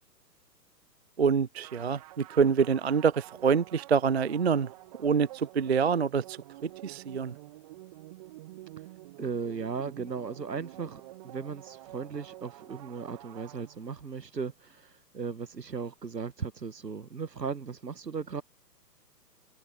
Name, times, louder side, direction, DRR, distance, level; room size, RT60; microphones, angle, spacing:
voice 1, 1.2-4.7 5.0-6.4 6.6-7.3, right 6 dB, 45° right, 0.4 m, -26 dB
sound 1, 1.6-14.2, right 17 dB, 25° right, 1.2 m, -48 dB
voice 2, 9.2-18.4, right 5 dB, 75° right, 1.4 m, -37 dB
figure-of-eight pair, 125°, 50 cm